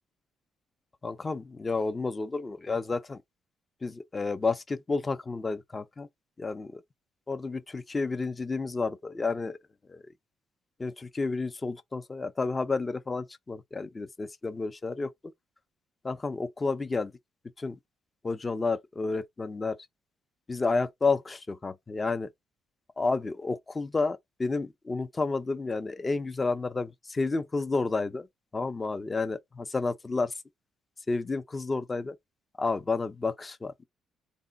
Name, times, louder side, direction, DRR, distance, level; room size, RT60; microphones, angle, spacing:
voice 1, 1.0-3.2 3.8-6.1 6.4-6.8 7.3-9.6 9.9-10.0 10.8-15.1 16.0-17.1 17.6-17.8 18.2-19.8 20.5-22.3 23.0-28.3 28.5-30.3 31.1-32.2 32.6-33.8, left 3 dB, 25° left, 0.5 m, -31 dB
3.4 x 2.2 x 3.8 m
cardioid pair, 90°, 0 cm